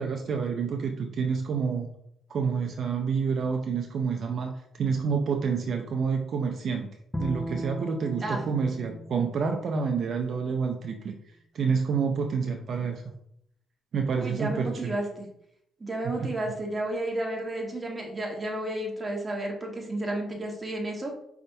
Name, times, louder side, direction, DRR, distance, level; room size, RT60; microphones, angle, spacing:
voice 1, 0.0-1.9 2.3-4.5 4.8-6.9 7.2-11.1 11.5-13.0 13.9-15.0 16.2-16.3, right 5 dB, 60° right, 3 dB, 0.5 m, -28 dB
Bowed string instrument, 7.1-10.4, equal, 5° left, 0.6 m, -38 dB
voice 2, 14.2-15.3 15.8-21.1, right 1 dB, 20° right, 0 dB, 1.3 m, -32 dB
5.2 x 3.5 x 2.7 m, 0.73 s
cardioid pair, 90°, 0 cm